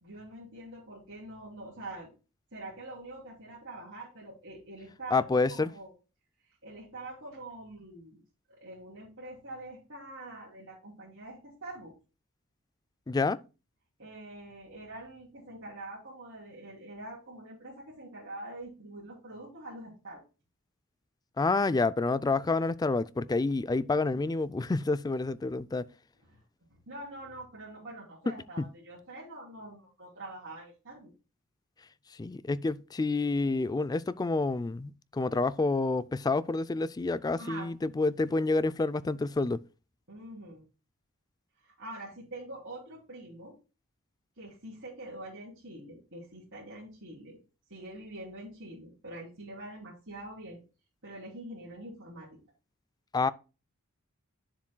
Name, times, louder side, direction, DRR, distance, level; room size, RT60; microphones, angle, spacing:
voice 1, 0.0-2.1 2.5-5.9 6.6-8.2 8.6-11.9 14.0-20.2 26.3-26.4 26.7-31.1 37.4-37.7 40.1-40.6 41.6-43.5 44.4-47.4 47.7-50.6 51.0-52.4, right 1 dB, 55° right, 3.1 m, -45 dB
voice 2, 5.1-5.7 13.1-13.4 21.4-25.9 28.6-28.7 32.1-39.6 53.1-53.3, left 3 dB, 15° left, 0.3 m, -28 dB
10.0 x 7.1 x 2.2 m
head